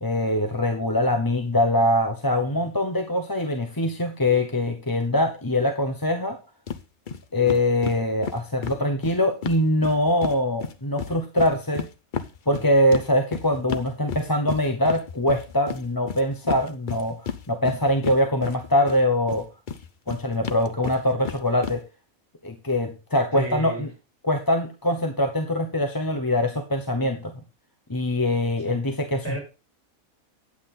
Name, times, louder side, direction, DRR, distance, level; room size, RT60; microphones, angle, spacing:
voice 1, 0.0-6.4 7.3-11.9 12.5-19.5 20.1-21.8 22.4-23.9 24.2-27.3 27.9-29.4, left 1 dB, 15° left, 6 dB, 1.0 m, -23 dB
sound 1, 6.7-6.8 7.1-7.2 7.5-10.4 10.6-19.0 19.3-21.8, left 6 dB, 40° left, 0.8 m, -32 dB
voice 2, 23.3-23.9 28.7-28.8 29.2-29.4, equal, 10° right, -1 dB, 7.0 m, -32 dB
9.7 x 8.8 x 3.8 m, 0.29 s
omnidirectional pair, 1.4 m